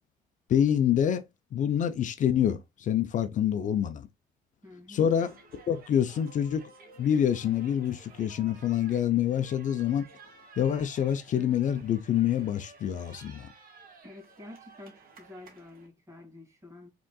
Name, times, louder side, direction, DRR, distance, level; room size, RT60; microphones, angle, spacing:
voice 1, 0.5-1.2 1.5-4.1 4.9-5.3 5.7-6.6 7.0-10.0 10.6-13.5, left 9 dB, 50° left, 0.6 m, -26 dB
voice 2, 4.6-5.1 14.0-16.9, left 2 dB, 15° right, 2.5 m, -48 dB
sound 1, 5.1-15.9, right 4 dB, 60° right, 1.7 m, -54 dB
4.9 x 3.8 x 2.3 m
cardioid pair, 110°, 17 cm